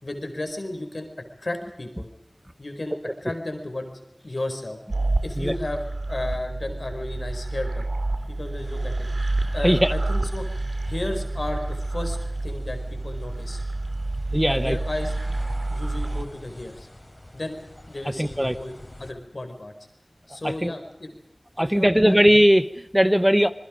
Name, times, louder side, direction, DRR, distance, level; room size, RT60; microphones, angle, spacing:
voice 1, 0.0-1.1 1.4-2.1 2.6-4.8 5.2-7.8 8.3-9.1 9.5-10.5 10.9-12.2 12.4-13.6 14.3-15.4 15.7-16.9 17.3-17.6 17.9-18.7 19.0-19.7 20.3-21.2 21.6-22.2, left 1 dB, 65° left, 5 dB, 4.7 m, -33 dB
sound 1, 4.9-16.2, right 2 dB, 90° right, 2.6 m, -28 dB
sound 2, 8.6-19.1, left 1 dB, 40° left, 4.4 m, -46 dB
voice 2, 14.3-14.8 18.2-18.6 20.6-20.7 21.6-23.5, equal, 10° right, 12 dB, 0.9 m, -19 dB
27.0 x 21.5 x 5.1 m, 0.88 s
wide cardioid pair, 40°, 0 cm